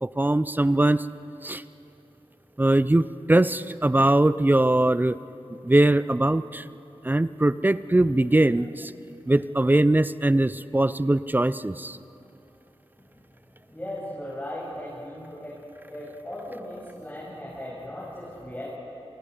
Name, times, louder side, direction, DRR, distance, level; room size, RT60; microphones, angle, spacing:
voice 1, 0.0-1.0 1.4-1.6 2.6-3.0 3.3-5.2 5.7-6.6 7.1-8.7 9.3-11.9, right 1 dB, 20° right, 15 dB, 0.6 m, -21 dB
voice 2, 13.7-15.5 15.9-18.8, left 1 dB, 15° left, -7 dB, 7.2 m, -37 dB
29.5 x 23.5 x 5.1 m, 2.9 s
cardioid pair, 55°, 10 cm